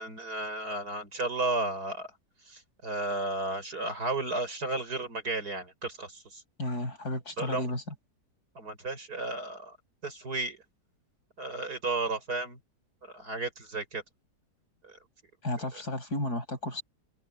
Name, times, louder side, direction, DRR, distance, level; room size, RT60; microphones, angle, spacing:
voice 1, 0.0-2.1 2.5-6.4 7.4-7.7 8.5-9.8 10.0-10.6 11.4-12.6 13.0-14.0 14.8-15.0, right 2 dB, 65° right, 6.6 m, -33 dB
voice 2, 6.6-7.9 15.4-16.8, left 1 dB, 70° left, 7.4 m, -33 dB
omnidirectional pair, 1.8 m